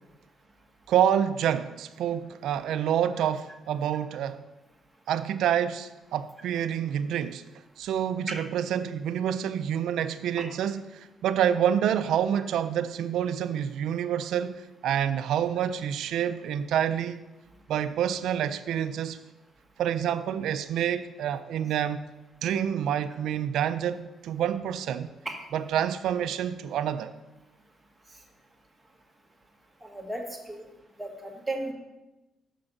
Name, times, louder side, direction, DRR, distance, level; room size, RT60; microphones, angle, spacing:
voice 1, 0.9-4.4 5.1-7.4 7.8-17.2 17.7-19.2 19.8-22.1 22.4-25.1 25.5-27.1, right 9 dB, 80° right, 0.4 m, -27 dB
voice 2, 29.8-30.7 31.0-31.7, right 2 dB, 10° right, 1.4 m, -35 dB
6.2 x 5.2 x 6.0 m
cardioid pair, 90°, 0 cm